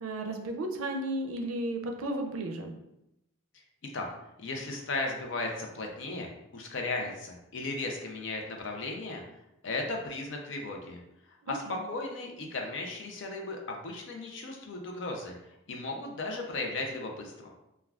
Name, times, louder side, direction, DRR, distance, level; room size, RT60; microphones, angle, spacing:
voice 1, 0.0-2.7 11.5-11.8, right 1 dB, 80° right, 3 dB, 0.4 m, -34 dB
voice 2, 4.4-9.2 9.6-11.0 11.5-17.5, left 2 dB, 60° left, 2 dB, 0.5 m, -36 dB
3.3 x 2.3 x 2.3 m, 0.85 s
head